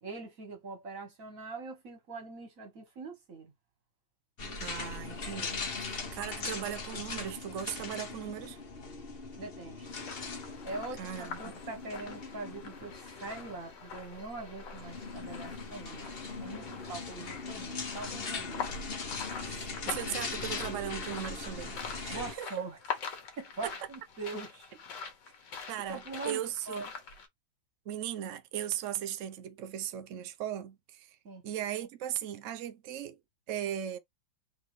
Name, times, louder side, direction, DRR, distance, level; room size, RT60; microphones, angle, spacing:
voice 1, 0.0-3.5 4.4-4.6 9.4-9.9 10.6-18.7 22.1-22.8 23.4-24.7 25.9-26.9 31.2-31.4, right 3 dB, 45° right, 2.1 m, -42 dB
sound 1, 4.4-22.3, left 4 dB, 35° left, 1.0 m, -40 dB
voice 2, 4.6-8.6 11.0-11.4 19.4-22.7 23.6-23.7 25.7-26.9 27.9-31.2 31.4-33.2 33.5-34.0, right 10 dB, 85° right, 0.6 m, -38 dB
sound 2, 9.9-27.3, left 6 dB, 60° left, 1.8 m, -44 dB
4.0 x 3.7 x 3.1 m
omnidirectional pair, 2.2 m